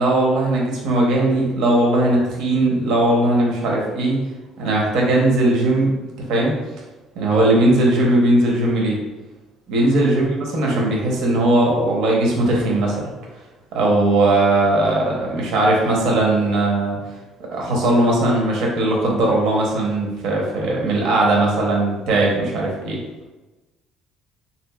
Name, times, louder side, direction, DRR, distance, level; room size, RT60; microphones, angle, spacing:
voice 1, 0.0-4.2 4.6-5.9 6.3-6.5 7.2-9.0 9.7-13.1 13.7-17.0 17.5-23.0, right 2 dB, 65° right, -2 dB, 0.8 m, -18 dB
3.6 x 2.9 x 2.3 m, 1.1 s
cardioid pair, 175°, 0 cm